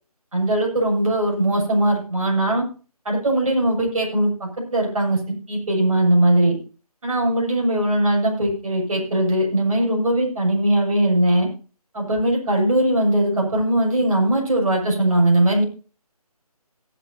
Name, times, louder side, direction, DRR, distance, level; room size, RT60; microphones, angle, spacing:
voice 1, 0.3-2.6 3.1-5.2 5.5-6.6 7.0-11.5 11.9-15.6, right 1 dB, 60° right, -1 dB, 7.2 m, -20 dB
17.5 x 11.0 x 2.8 m, 0.36 s
figure-of-eight pair, 170°, 20 cm